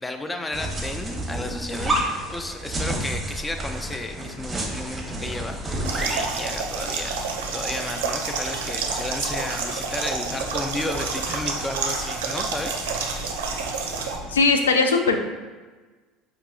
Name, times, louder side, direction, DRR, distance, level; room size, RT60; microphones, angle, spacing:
voice 1, 0.0-12.9, left 2 dB, 15° left, 6 dB, 0.4 m, -33 dB
sound 1, 0.5-6.4, right 1 dB, 25° right, 0.8 m, -29 dB
sound 2, 5.2-14.4, left 1 dB, 50° left, 0.9 m, -40 dB
sound 3, 5.8-14.2, right 4 dB, 80° right, 0.5 m, -29 dB
voice 2, 14.3-15.2, left 4 dB, 90° left, 6 dB, 0.3 m, -19 dB
4.7 x 2.8 x 2.3 m, 1.3 s
hypercardioid pair, 75°, 0 cm